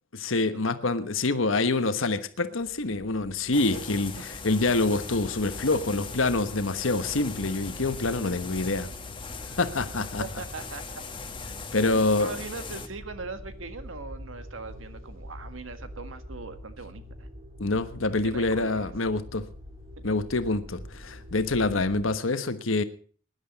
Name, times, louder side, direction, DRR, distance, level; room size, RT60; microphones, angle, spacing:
voice 1, 0.1-8.9 9.6-10.2 11.7-12.3 17.6-19.5 20.0-22.8, left 3 dB, 75° left, 1.3 m, -26 dB
sound 1, 2.6-22.1, left 1 dB, 30° right, 2.4 m, -45 dB
sound 2, 3.5-12.9, left 4 dB, 25° left, 1.4 m, -39 dB
voice 2, 10.2-11.0 11.9-17.3 18.2-18.9 21.7-21.8, right 3 dB, 75° right, 1.7 m, -40 dB
19.5 x 11.5 x 4.1 m
head